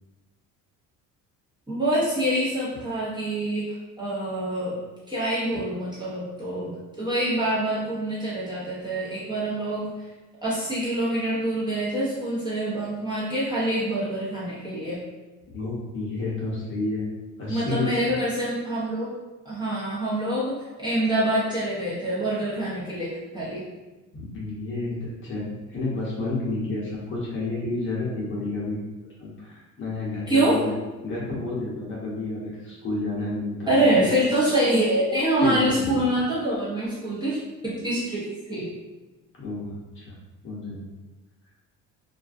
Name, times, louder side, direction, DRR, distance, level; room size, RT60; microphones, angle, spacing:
voice 1, 1.7-3.7 4.0-4.8 5.1-9.9 10.4-15.0 17.5-19.1 19.4-23.6 30.3-30.6 33.7-37.4 37.6-38.7, right 1 dB, 15° right, -10 dB, 0.7 m, -25 dB
voice 2, 15.5-17.1 17.4-17.9 24.1-28.8 29.2-30.7 31.0-33.7 35.4-36.0 39.4-40.1 40.4-40.8, left 2 dB, 35° left, -6 dB, 0.8 m, -30 dB
2.4 x 2.2 x 2.5 m, 1.1 s
cardioid pair, 135°, 33 cm